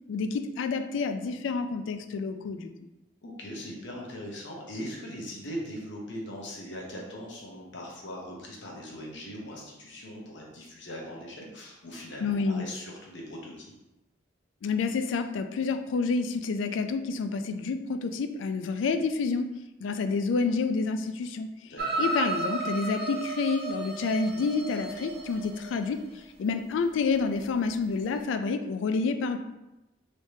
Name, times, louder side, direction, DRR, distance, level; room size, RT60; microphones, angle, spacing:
voice 1, 0.1-2.7 12.2-12.6 14.6-19.5 19.8-21.5 22.0-26.0 26.4-29.4, left 4 dB, 90° left, 8 dB, 0.3 m, -28 dB
voice 2, 3.2-13.7 21.7-22.0, equal, 75° left, -2 dB, 0.9 m, -40 dB
sound 1, 21.8-26.0 28.2-28.3, right 3 dB, 55° right, 0.4 m, -33 dB
3.2 x 3.1 x 2.7 m, 0.97 s
head